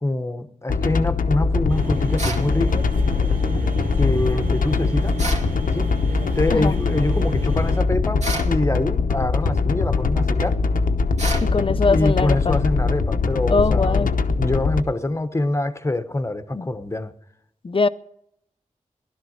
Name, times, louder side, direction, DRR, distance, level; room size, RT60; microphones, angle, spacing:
voice 1, 0.0-2.8 4.0-5.2 5.7-5.9 6.3-10.6 11.9-17.1, left 1 dB, 20° left, 1.2 m, -25 dB
sound 1, 0.7-14.8, left 4 dB, 85° left, 1.0 m, -22 dB
sound 2, 1.7-7.8, right 2 dB, 80° right, 2.9 m, -33 dB
sound 3, 2.2-2.5 5.2-5.5 8.2-8.5 11.2-11.5, right 3 dB, 55° right, 2.5 m, -28 dB
voice 2, 11.4-12.6 13.5-14.1 16.5-16.7 17.6-17.9, left 4 dB, 40° left, 0.7 m, -21 dB
16.0 x 12.0 x 6.6 m
wide cardioid pair, 75°, 14 cm